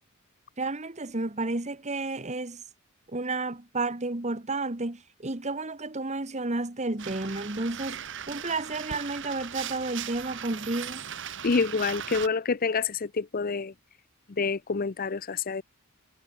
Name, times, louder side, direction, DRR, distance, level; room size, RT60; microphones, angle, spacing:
voice 1, 0.6-2.6 3.1-8.0 8.3-11.0, right 2 dB, 30° right, 1.5 m, -31 dB
sound 1, 7.0-12.3, right 8 dB, 60° right, 2.8 m, -38 dB
voice 2, 11.4-13.7 14.3-15.6, left 4 dB, 40° left, 0.6 m, -27 dB
head